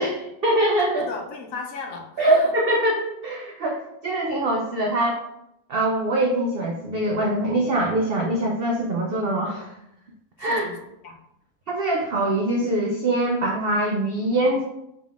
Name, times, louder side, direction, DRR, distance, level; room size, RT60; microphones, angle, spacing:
voice 1, 0.0-1.1 2.2-5.2 5.7-9.7 10.4-10.7 11.7-14.6, right 1 dB, 70° right, -1 dB, 0.5 m, -23 dB
voice 2, 1.0-2.5 10.4-11.2, left 4 dB, 70° left, 1 dB, 1.0 m, -36 dB
4.9 x 3.5 x 2.4 m, 0.81 s
omnidirectional pair, 1.6 m